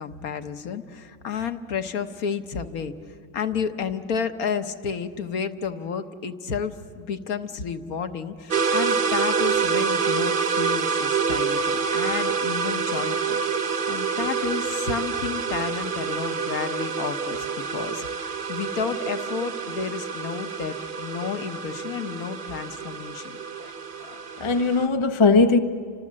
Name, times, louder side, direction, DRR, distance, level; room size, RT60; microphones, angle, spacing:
voice 1, 0.0-13.4 13.9-23.4, left 6 dB, 55° left, 1.4 m, -31 dB
sound 1, 8.5-24.9, right 6 dB, 55° right, 0.5 m, -27 dB
voice 2, 24.0-25.6, left 4 dB, 40° left, 0.4 m, -20 dB
30.0 x 25.5 x 7.5 m
omnidirectional pair, 2.0 m